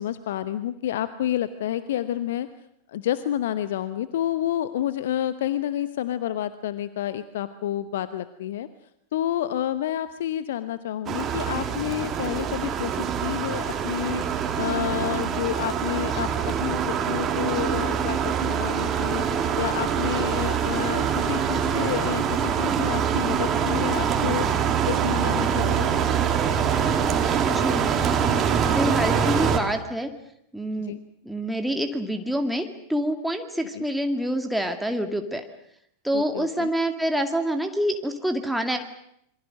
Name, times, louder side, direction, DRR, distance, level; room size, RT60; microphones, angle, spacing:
voice 1, 0.0-2.5 2.9-8.7 9.1-14.2 14.6-19.2 19.6-24.5 24.9-25.9 30.8-31.0 33.7-33.8 36.1-36.7, left 12 dB, 55° left, 13 dB, 1.0 m, -29 dB
sound 1, 11.1-29.6, right 7 dB, 25° right, 3.1 m, -24 dB
voice 2, 27.4-30.1 30.5-30.9 31.2-35.4 36.0-38.8, equal, ahead, 4 dB, 2.2 m, -27 dB
27.5 x 24.0 x 6.5 m, 0.74 s
figure-of-eight pair, 90°, 0 cm